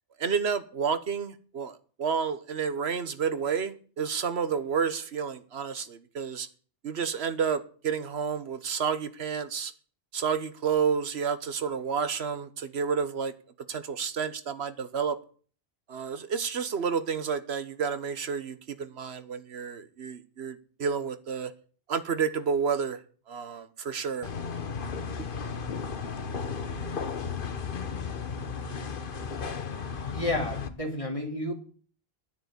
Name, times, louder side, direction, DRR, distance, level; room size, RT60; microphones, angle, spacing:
voice 1, 0.2-6.5 6.8-9.7 10.1-13.3 13.7-15.2 15.9-21.5 21.9-23.0 23.3-24.3, right 6 dB, 85° right, 1.4 m, -30 dB
sound 1, 24.2-30.7, left 5 dB, 60° left, 1.2 m, -34 dB
voice 2, 30.1-31.5, left 1 dB, 30° left, 3.1 m, -31 dB
10.0 x 9.8 x 8.1 m
omnidirectional pair, 1.0 m